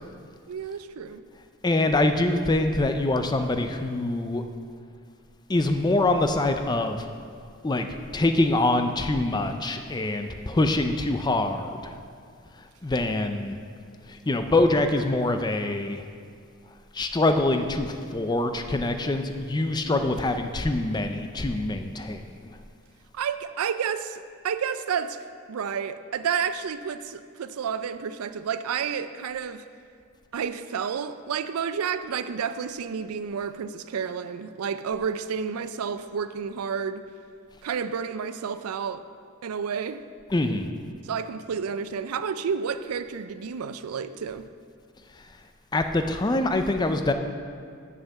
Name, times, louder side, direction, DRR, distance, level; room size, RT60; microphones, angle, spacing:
voice 1, 0.5-1.3 19.8-20.1 23.1-29.6 30.3-37.0 37.6-39.0 39.4-40.0 41.0-44.5, right 7 dB, 85° right, 12 dB, 0.4 m, -30 dB
voice 2, 1.6-4.4 5.5-7.1 7.6-12.0 12.8-13.6 14.1-16.0 16.9-22.5 40.3-40.7 45.7-47.1, left 2 dB, 20° left, 7 dB, 0.4 m, -24 dB
6.7 x 6.3 x 7.1 m, 2.2 s
head